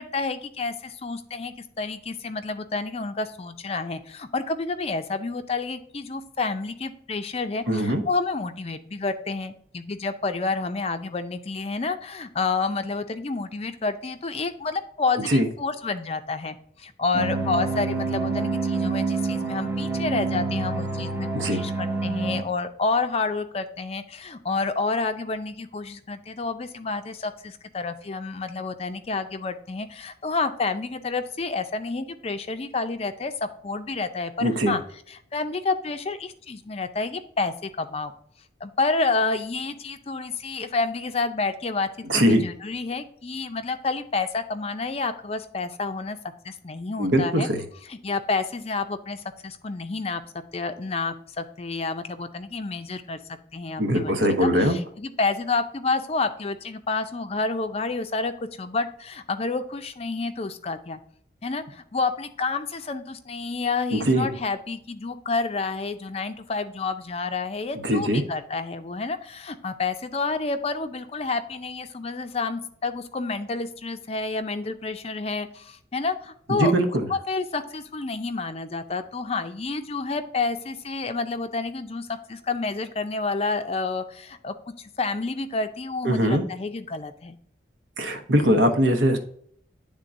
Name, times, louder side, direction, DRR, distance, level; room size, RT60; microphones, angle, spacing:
voice 1, 0.0-34.8 35.1-38.1 38.6-41.9 42.1-46.2 46.4-47.5 47.9-50.2 50.5-53.2 53.5-54.1 54.4-58.3 58.6-61.0 61.4-76.7 77.1-87.4, left 3 dB, 35° left, 9 dB, 0.5 m, -29 dB
voice 2, 7.7-8.0 15.2-15.5 21.3-21.6 34.4-34.7 42.1-42.4 47.0-47.6 53.8-54.8 63.9-64.3 67.8-68.2 76.5-77.1 86.0-86.4 88.0-89.2, equal, 85° right, 6 dB, 1.0 m, -21 dB
sound 1, 17.1-22.4, right 3 dB, 10° right, 0.7 m, -27 dB
9.8 x 3.7 x 2.6 m, 0.64 s
head